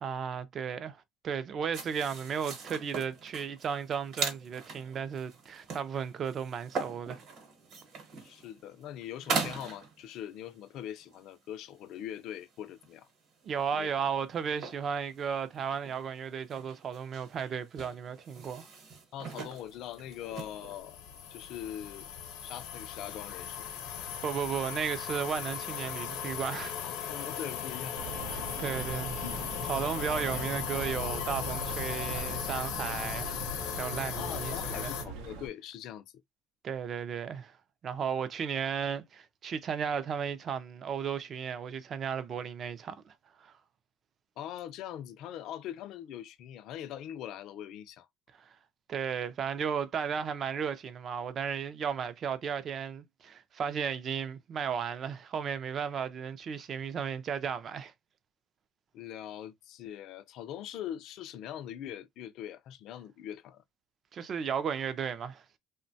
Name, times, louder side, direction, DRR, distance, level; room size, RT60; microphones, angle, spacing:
voice 1, 0.0-7.2 13.4-18.7 24.2-26.7 28.3-29.1 29.6-34.9 36.6-37.6 37.8-43.1 43.4-43.5 48.4-48.5 48.9-57.9 64.1-65.4, right 7 dB, 30° right, 0.3 m, -34 dB
sound 1, 1.7-10.5 11.1-11.2 11.8-12.5 12.8-13.1 13.5-14.1 14.5-20.8, right 5 dB, 45° right, 0.9 m, -41 dB
voice 2, 8.2-13.1 13.7-13.9 19.1-21.0 21.3-22.1 22.4-23.7 26.8-27.9 28.6-28.8 29.2-29.4 34.2-36.0 44.4-48.1 58.9-63.6, left 11 dB, 50° left, 0.3 m, -42 dB
sound 2, 19.9-35.0, left 8 dB, 85° left, 0.7 m, -37 dB
sound 3, 28.0-35.5, right 4 dB, 85° right, 0.5 m, -42 dB
2.9 x 2.1 x 2.6 m
cardioid pair, 170°, 0 cm